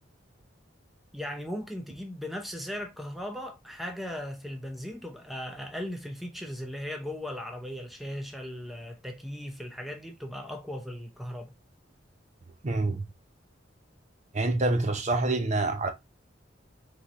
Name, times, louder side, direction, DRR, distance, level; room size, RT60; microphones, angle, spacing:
voice 1, 1.1-11.5, left 1 dB, ahead, 0.7 m, -37 dB
voice 2, 12.6-13.0 14.3-15.9, right 2 dB, 40° right, 0.7 m, -26 dB
3.7 x 3.2 x 4.0 m
head